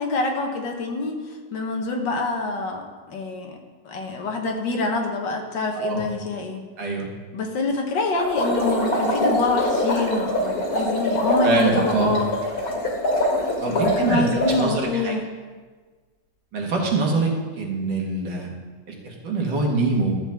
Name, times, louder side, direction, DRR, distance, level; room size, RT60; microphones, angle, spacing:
voice 1, 0.0-3.6 3.9-6.6 7.3-12.3 13.7-15.3, left 3 dB, 85° left, 2 dB, 1.8 m, -26 dB
sound 1, 8.2-14.7, left 1 dB, 60° left, 2.3 m, -24 dB
voice 2, 11.4-12.1 13.6-14.2 14.6-15.1 16.5-18.5 18.9-20.2, right 3 dB, 80° right, -1 dB, 2.3 m, -24 dB
13.0 x 7.7 x 3.5 m, 1.4 s
omnidirectional pair, 1.9 m